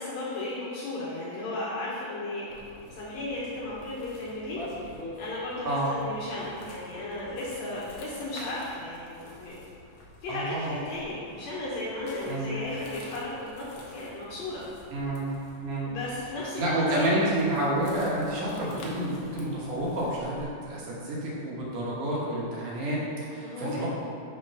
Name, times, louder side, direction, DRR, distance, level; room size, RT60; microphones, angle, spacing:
voice 1, 0.0-2.5 2.8-9.6 10.2-14.7 15.8-17.2 23.4-23.9, left 2 dB, 70° left, -6 dB, 1.7 m, -35 dB
Steps on grass, 2.5-20.4, left 1 dB, 90° left, 1.2 m, -47 dB
voice 2, 10.3-10.8 12.3-12.6 14.9-15.3 15.6-15.9 16.6-23.9, right 1 dB, 75° right, -6 dB, 2.6 m, -29 dB
5.6 x 3.6 x 5.3 m, 2.5 s
omnidirectional pair, 3.8 m